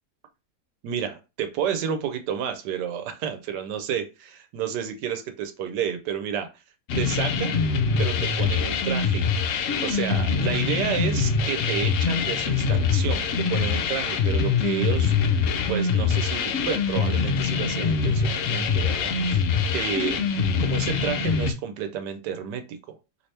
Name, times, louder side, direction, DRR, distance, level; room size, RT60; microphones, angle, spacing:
voice 1, 0.8-6.5 6.9-7.5 8.0-9.3 9.8-19.4 19.7-20.2 20.6-22.6, right 8 dB, 80° right, 8 dB, 1.2 m, -31 dB
sound 1, 6.9-21.5, left 5 dB, 70° left, 0.8 m, -24 dB
2.9 x 2.8 x 3.2 m, 0.28 s
omnidirectional pair, 1.8 m